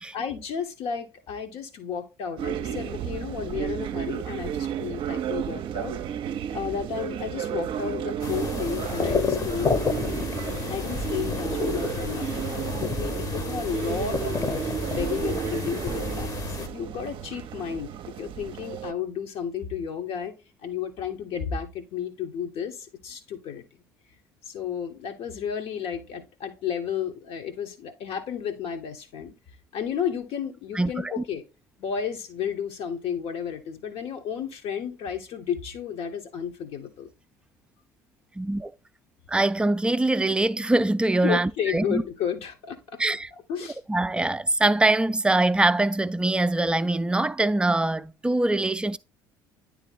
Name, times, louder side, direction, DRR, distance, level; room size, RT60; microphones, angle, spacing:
voice 1, 0.1-5.9 6.5-9.7 10.7-20.3 20.6-23.6 24.4-29.3 29.7-31.4 31.8-37.1 41.2-43.0 43.5-43.8, left 7 dB, 60° left, 1.4 m, -32 dB
sound 1, 2.4-18.9, right 9 dB, 50° right, 0.6 m, -32 dB
sound 2, 8.2-16.7, left 4 dB, 30° left, 1.1 m, -30 dB
voice 2, 30.7-31.2 38.4-38.7 39.3-42.0 43.0-43.3 43.9-49.0, right 2 dB, 10° right, 0.4 m, -23 dB
9.9 x 3.3 x 4.0 m
hypercardioid pair, 60°, 11 cm